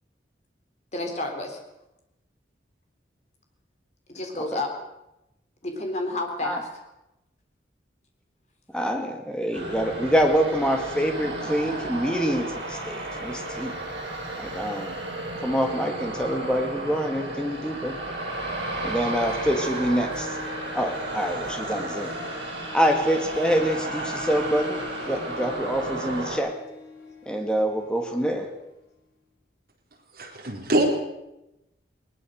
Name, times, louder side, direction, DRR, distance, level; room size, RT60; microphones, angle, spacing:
voice 1, 0.9-1.6 4.1-4.7 5.6-6.7, left 2 dB, 40° left, 3 dB, 3.6 m, -30 dB
voice 2, 8.7-13.8 14.4-14.9 15.4-18.0 18.8-20.4 20.7-22.1 22.7-26.6 27.3-28.5, equal, 5° left, 3 dB, 2.3 m, -26 dB
sound 1, 9.5-26.4, right 1 dB, 75° right, 7.7 m, -33 dB
Harp, 19.2-28.7, left 3 dB, 60° left, 5.6 m, -43 dB
voice 3, 30.1-30.9, right 1 dB, 55° right, 1 dB, 4.2 m, -24 dB
20.0 x 20.0 x 6.6 m, 0.92 s
head